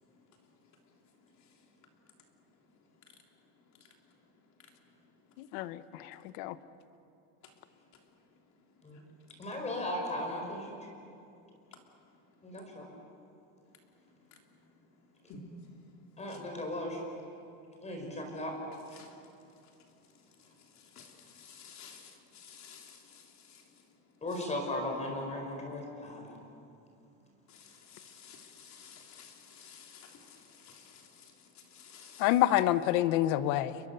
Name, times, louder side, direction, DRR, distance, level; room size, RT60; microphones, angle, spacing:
voice 1, 5.4-6.6 32.2-33.8, left 14 dB, 60° left, 1.1 m, -28 dB
voice 2, 9.4-10.9 12.4-12.9 16.2-17.0 17.8-18.5 24.2-26.3, left 1 dB, 15° left, 4.8 m, -37 dB
voice 3, 21.4-23.0 27.6-30.4 30.6-31.0 31.7-32.2, left 6 dB, 40° left, 3.5 m, -52 dB
30.0 x 22.0 x 6.9 m
supercardioid pair, 155°, 44 cm